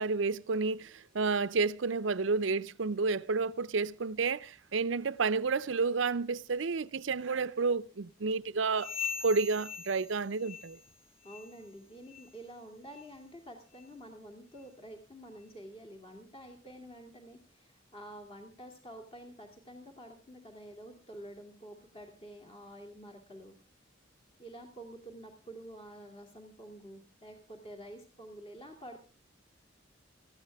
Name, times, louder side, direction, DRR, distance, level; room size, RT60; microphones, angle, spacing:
voice 1, 0.0-8.9 9.2-10.8, right 4 dB, 70° right, 0.6 m, -30 dB
sound 1, 8.7-11.0 11.2-11.6 12.1-12.3 12.9-13.1 13.8-13.9 14.6-14.7, left 7 dB, 75° left, 1.1 m, -41 dB
voice 2, 11.2-23.5 24.4-29.1, right 1 dB, 30° left, 2.5 m, -49 dB
19.0 x 14.5 x 3.5 m
head